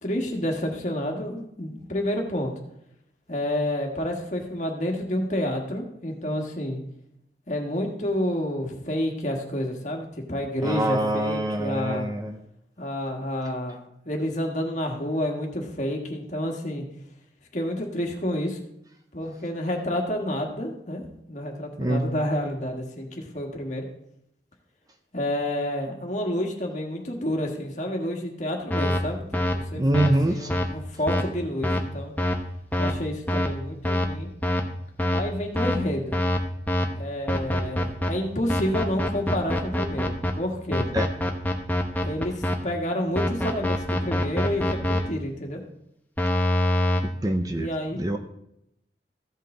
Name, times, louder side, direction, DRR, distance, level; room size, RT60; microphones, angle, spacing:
voice 1, 0.0-2.5 3.3-6.8 7.5-12.1 12.8-13.8 14.0-16.8 17.5-18.6 19.1-23.8 25.1-32.1 32.8-34.3 35.1-36.2 36.9-40.9 42.0-45.6 47.6-48.0, left 1 dB, 45° left, 2 dB, 1.5 m, -29 dB
voice 2, 10.6-12.3 21.8-22.0 29.7-30.5 40.9-41.1 47.2-47.7 48.0-48.2, right 1 dB, 20° right, 6 dB, 0.5 m, -24 dB
sound 1, 28.7-29.0 29.3-29.5 29.9-30.1 30.5-30.7 31.1-31.2 31.6-31.8 32.2-32.3 32.7-32.9 33.3-33.5 33.8-34.1 34.4-34.6 35.0-35.2 35.5-35.8 36.1-36.4 36.7-36.8 37.3-38.1 38.5-40.3 40.7-42.5 43.2-45.0 46.2-47.0, left 1 dB, 10° left, 0.8 m, -24 dB
14.5 x 5.7 x 3.8 m, 0.79 s
head